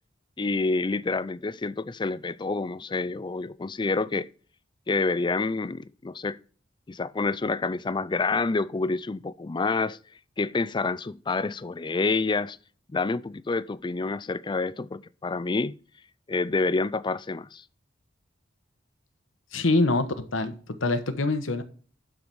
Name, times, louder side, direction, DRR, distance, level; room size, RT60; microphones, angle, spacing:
voice 1, 0.4-4.3 4.9-6.4 6.9-10.0 10.4-12.6 12.9-15.8 16.3-17.6, left 3 dB, 25° left, 0.4 m, -28 dB
voice 2, 19.5-21.6, left 2 dB, 90° left, 1.2 m, -25 dB
12.0 x 4.8 x 5.4 m
head